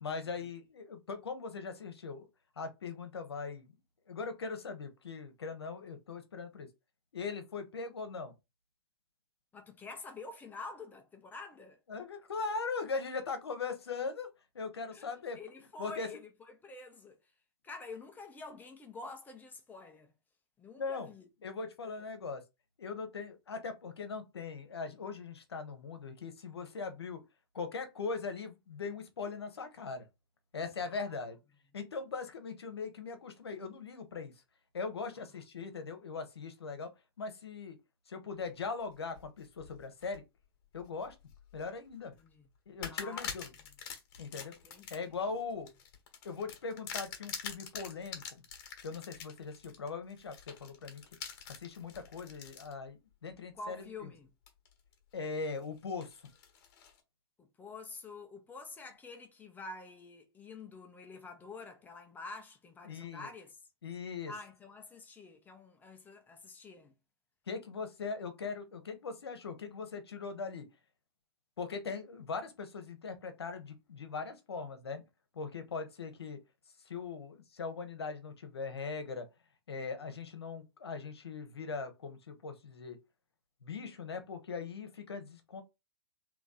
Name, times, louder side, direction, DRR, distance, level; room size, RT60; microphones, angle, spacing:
voice 1, 0.0-2.3 2.6-3.6 4.1-6.7 7.1-8.3 11.9-14.3 14.5-15.4 15.8-16.1 20.8-21.1 21.4-22.4 22.8-27.2 27.5-30.0 30.5-31.4 31.7-34.3 34.7-36.9 37.2-37.8 38.1-40.2 40.7-41.1 41.5-42.1 42.7-43.5 44.2-44.5 44.9-45.7 46.2-48.4 48.8-51.0 51.6-53.9 55.1-56.2 62.8-63.3 63.8-64.3 67.5-70.7 71.6-75.0 75.3-76.4 76.9-79.3 79.7-83.0 83.6-85.6, left 4 dB, 75° left, 1.1 m, -40 dB
voice 2, 9.5-11.8 14.9-15.1 15.3-17.3 17.6-20.1 20.6-21.3 21.9-22.0 30.8-31.2 42.2-42.5 42.9-43.3 44.6-45.1 53.5-54.3 57.4-63.6 64.2-66.9, left 3 dB, 15° left, 0.9 m, -48 dB
sound 1, 38.9-40.2 40.7-41.7 42.1-42.3 42.8-52.7 53.3-53.4 54.5-54.9 55.3-57.0, left 7 dB, 45° left, 1.4 m, -45 dB
3.5 x 3.0 x 4.0 m
figure-of-eight pair, 115°, 13 cm